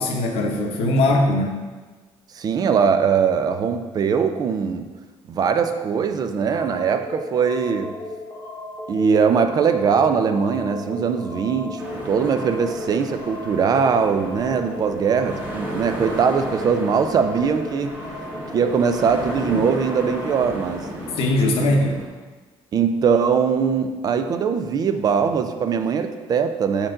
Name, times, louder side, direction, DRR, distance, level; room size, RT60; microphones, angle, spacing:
voice 1, 0.0-1.7 21.2-22.0, left 1 dB, 75° left, 2 dB, 1.0 m, -20 dB
voice 2, 2.3-4.9 5.3-7.9 8.9-18.0 18.5-20.9 21.6-21.8 22.7-26.9, right 6 dB, 40° right, 8 dB, 0.4 m, -21 dB
sound 1, 6.5-20.5, left 2 dB, 20° left, 1.0 m, -36 dB
sound 2, 11.8-22.1, equal, 15° right, 1.2 m, -35 dB
7.4 x 4.5 x 3.8 m, 1.3 s
cardioid pair, 160°, 10 cm